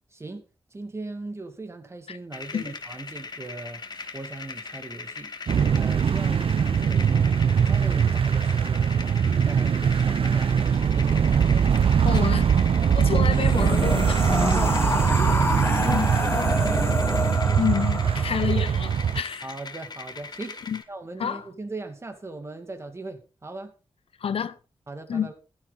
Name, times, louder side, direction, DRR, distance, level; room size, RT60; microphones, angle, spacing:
voice 1, 0.1-0.4 0.7-3.8 4.1-5.3 5.7-11.6 14.4-17.2 19.4-23.7 24.9-25.3, right 3 dB, 30° right, 2.3 m, -39 dB
sound 1, 2.3-20.8, left 4 dB, 45° left, 1.6 m, -40 dB
sound 2, 5.5-19.2, right 7 dB, 75° right, 0.6 m, -22 dB
voice 2, 12.0-12.5 12.9-14.3 15.8-16.1 17.6-19.5 20.7-20.8 21.2-21.4 24.2-24.6 25.1-25.3, left 7 dB, 85° left, 0.8 m, -28 dB
sound 3, 13.3-18.6, left 2 dB, 25° left, 2.9 m, -28 dB
14.5 x 12.0 x 4.1 m
wide cardioid pair, 150°, 9 cm